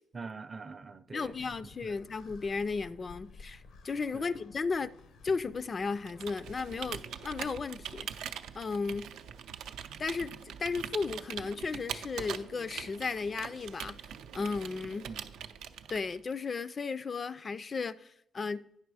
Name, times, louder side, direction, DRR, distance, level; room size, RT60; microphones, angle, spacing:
voice 1, 0.1-1.9 4.1-4.4 15.1-15.4, right 4 dB, 35° right, 0.5 m, -45 dB
voice 2, 1.1-4.9 5.2-8.1 8.6-9.1 10.0-14.0 14.3-15.1 15.9-18.7, left 4 dB, 40° left, 0.4 m, -35 dB
sound 1, 1.2-7.7, left 4 dB, 75° left, 0.7 m, -54 dB
Computer keyboard, 6.0-16.3, right 8 dB, 85° right, 0.5 m, -43 dB
9.3 x 5.9 x 4.8 m
cardioid pair, 90°, 0 cm